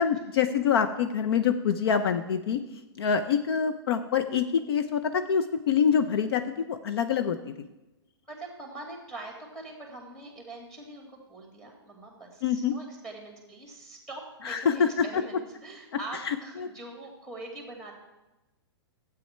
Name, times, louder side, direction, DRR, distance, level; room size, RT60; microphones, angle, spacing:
voice 1, 0.0-2.6 3.0-7.5 12.4-12.7 14.4-15.2 16.2-16.7, left 7 dB, 60° left, 9 dB, 0.7 m, -26 dB
voice 2, 8.3-18.0, right 2 dB, 5° left, 1 dB, 2.5 m, -43 dB
12.5 x 8.5 x 4.4 m, 1.0 s
hypercardioid pair, 145°, 14 cm